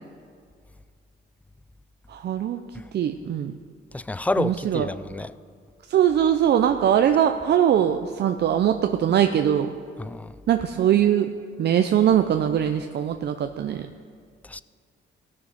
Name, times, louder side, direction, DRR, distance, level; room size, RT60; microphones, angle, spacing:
voice 1, 2.1-2.6 2.9-3.5 4.4-4.9 5.9-9.7 10.5-11.3 11.6-13.9, right 9 dB, 60° right, 0.6 m, -21 dB
voice 2, 3.9-5.3 10.0-10.3 14.5-14.6, left 2 dB, 5° left, 0.3 m, -29 dB
17.0 x 6.5 x 5.4 m
cardioid pair, 90°, 20 cm